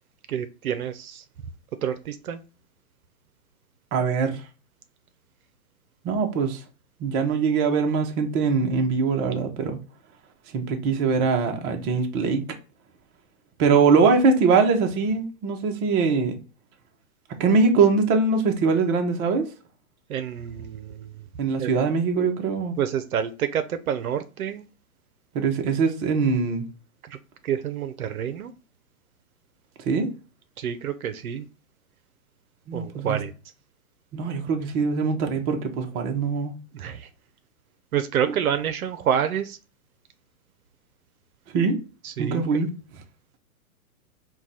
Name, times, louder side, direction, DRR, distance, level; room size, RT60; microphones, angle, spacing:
voice 1, 0.3-1.2 1.8-2.4 20.1-21.2 21.6-21.7 22.8-24.7 27.0-27.2 27.4-28.5 30.6-31.5 32.7-33.3 36.7-37.1 37.9-39.6 42.0-42.4, right 9 dB, 75° right, 0.6 m, -28 dB
voice 2, 3.9-4.4 6.0-6.6 7.0-9.8 10.5-12.4 13.6-16.4 17.4-19.4 21.4-22.8 25.3-26.6 29.8-30.1 32.7-33.2 34.1-36.5 41.5-41.8 42.2-42.7, right 4 dB, 25° right, 0.7 m, -22 dB
4.6 x 2.3 x 3.9 m
hypercardioid pair, 130°, 43 cm